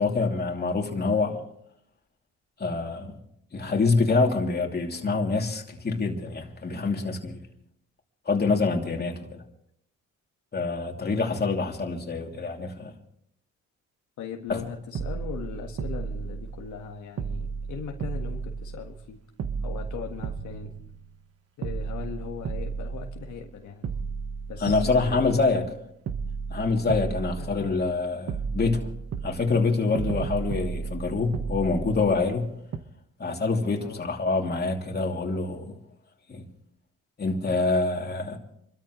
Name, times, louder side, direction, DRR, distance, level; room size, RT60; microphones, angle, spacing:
voice 1, 0.0-1.4 2.6-3.1 3.5-7.4 8.3-9.4 10.5-12.9 14.5-14.6 24.6-25.6 26.5-28.9 29.2-32.5 33.2-35.7 36.3-36.5 37.2-38.4, left 3 dB, 35° left, 2.8 m, -26 dB
voice 2, 14.2-19.2 19.6-20.7 21.6-23.9 24.5-25.8 27.4-27.7 33.8-34.0, left 6 dB, 75° left, 1.6 m, -39 dB
sound 1, 14.5-14.6 14.9-16.9 17.2-19.1 19.4-21.3 21.6-23.5 23.8-25.7 26.1-28.0 28.3-32.4 32.7-32.8, right 5 dB, 55° right, 1.2 m, -34 dB
28.0 x 13.5 x 3.1 m
cardioid pair, 90°, 30 cm